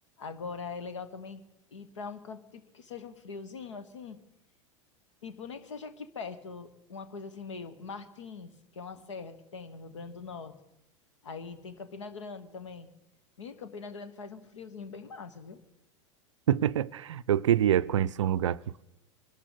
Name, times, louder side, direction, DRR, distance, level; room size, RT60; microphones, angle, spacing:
voice 1, 0.2-1.4 1.7-4.2 5.2-10.5 11.2-12.9 13.4-15.6, left 5 dB, 70° left, 1.3 m, -42 dB
voice 2, 16.5-18.8, right 10 dB, 70° right, 0.4 m, -26 dB
24.0 x 12.0 x 4.0 m
figure-of-eight pair, 85°, 16 cm